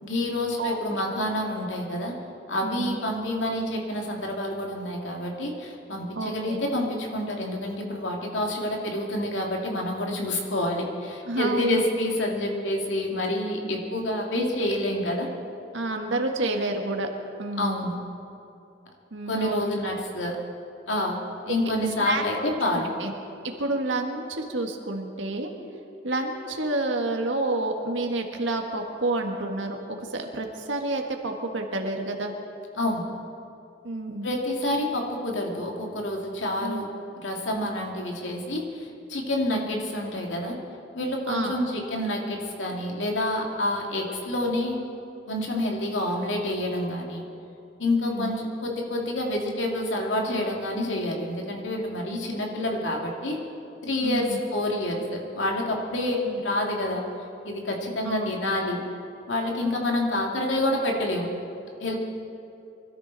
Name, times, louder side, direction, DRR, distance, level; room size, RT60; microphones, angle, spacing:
voice 1, 0.0-2.1 2.5-15.3 17.6-18.0 19.3-20.4 20.9-21.2 21.5-22.9 32.8-33.1 34.2-36.9 37.2-40.6 40.9-44.8 45.3-47.2 47.8-53.4 53.8-57.1 57.4-58.9 59.3-61.3 61.8-62.0, left 1 dB, 85° left, 0 dB, 2.5 m, -28 dB
voice 2, 2.6-3.0 6.1-6.6 11.3-11.8 13.6-13.8 15.7-17.1 17.4-17.8 19.1-19.6 22.0-22.2 23.0-23.1 23.4-25.5 26.0-29.8 30.1-32.3 33.8-34.3 36.6-36.9 39.5-39.6 41.3-41.6 48.0-48.3 54.0-54.4 56.2-56.4 58.0-58.3, right 2 dB, 90° right, 3 dB, 1.6 m, -29 dB
24.5 x 13.5 x 4.1 m, 2.7 s
head